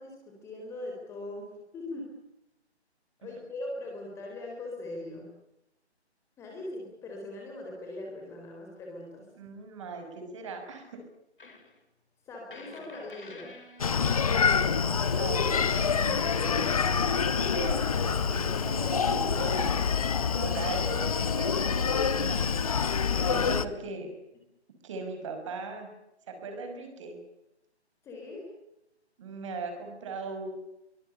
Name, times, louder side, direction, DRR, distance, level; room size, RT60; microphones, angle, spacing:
voice 1, 0.0-2.2 3.2-5.3 6.4-9.3 12.3-13.5 23.2-23.4 28.0-28.5, left 2 dB, 10° left, 0 dB, 4.1 m, -40 dB
voice 2, 9.4-10.9 15.2-17.1 17.4-19.8 20.3-22.4 23.2-24.1 24.8-25.9 26.3-27.2 29.2-30.5, right 3 dB, 25° right, 5 dB, 6.0 m, -38 dB
sound 1, 11.4-11.8 12.5-16.7, left 3 dB, 50° left, 5.2 m, -49 dB
Screaming, 13.8-23.6, left 6 dB, 30° left, 1.2 m, -26 dB
24.0 x 22.0 x 10.0 m, 0.87 s
figure-of-eight pair, 145°, 34 cm